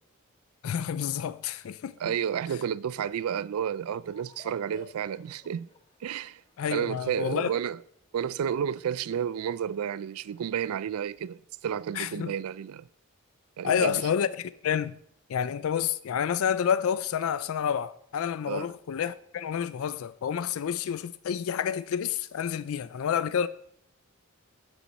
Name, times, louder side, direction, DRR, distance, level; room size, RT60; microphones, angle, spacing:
voice 1, 0.6-1.9 6.6-7.5 11.9-12.3 13.6-14.9 15.3-23.5, left 8 dB, 75° left, 0.4 m, -29 dB
voice 2, 2.0-5.7 6.0-6.4 6.7-7.8 8.1-12.9 13.6-14.0 18.5-18.7, right 8 dB, 80° right, 0.3 m, -31 dB
sound 1, 4.0-10.5, left 2 dB, 25° left, 0.9 m, -57 dB
7.1 x 7.1 x 5.2 m
head